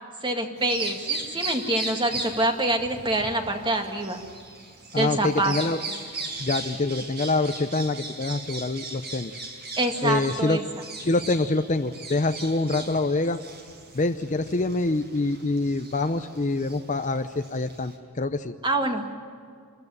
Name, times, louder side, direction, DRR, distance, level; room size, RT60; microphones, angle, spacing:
voice 1, 0.2-4.2 5.0-5.5 9.8-10.6 18.6-19.1, right 2 dB, 20° right, 4 dB, 1.9 m, -26 dB
Bird vocalization bird call bird song, 0.6-17.9, right 3 dB, 50° right, 5.3 m, -38 dB
voice 2, 4.9-5.8 6.4-9.4 10.0-10.6 11.0-13.4 13.9-18.5, left 2 dB, 35° left, 9 dB, 0.7 m, -25 dB
27.0 x 13.5 x 9.9 m, 2.2 s
head